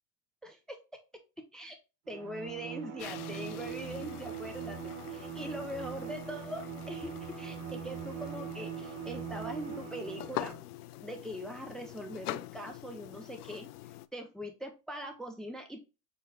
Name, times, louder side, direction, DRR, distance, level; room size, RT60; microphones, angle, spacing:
voice 1, 0.4-0.8 1.4-1.8 2.1-10.5 11.0-13.7 14.1-15.8, equal, ahead, 5 dB, 0.5 m, -42 dB
Bowed string instrument, 2.1-10.6, right 8 dB, 60° right, 1.3 m, -42 dB
sound 1, 3.0-14.1, left 16 dB, 80° left, 0.5 m, -45 dB
6.7 x 2.2 x 3.3 m, 0.28 s
hypercardioid pair, 120°, 45 cm